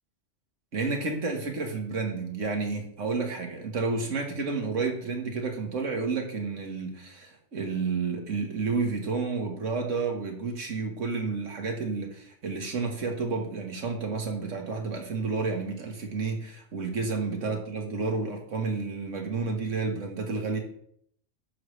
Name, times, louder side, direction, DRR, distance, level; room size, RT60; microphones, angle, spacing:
voice 1, 0.7-20.6, right 4 dB, 85° right, 2 dB, 1.8 m, -30 dB
10.5 x 6.4 x 3.3 m, 0.68 s
omnidirectional pair, 1.3 m